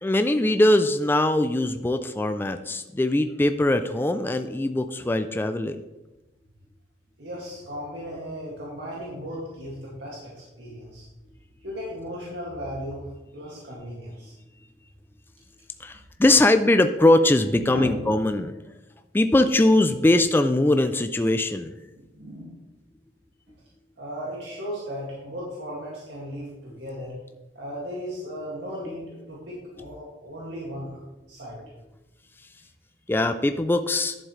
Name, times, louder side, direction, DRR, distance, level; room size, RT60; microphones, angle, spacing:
voice 1, 0.0-5.8 15.8-18.5 19.1-21.8 33.1-34.2, left 1 dB, 10° left, 8 dB, 0.3 m, -21 dB
voice 2, 7.2-11.1 11.6-13.0 13.3-14.3 17.5-18.0 21.9-22.5 24.0-27.1 27.5-31.0 31.3-31.6, equal, 85° right, -6 dB, 2.2 m, -36 dB
11.0 x 7.4 x 3.2 m, 1.0 s
head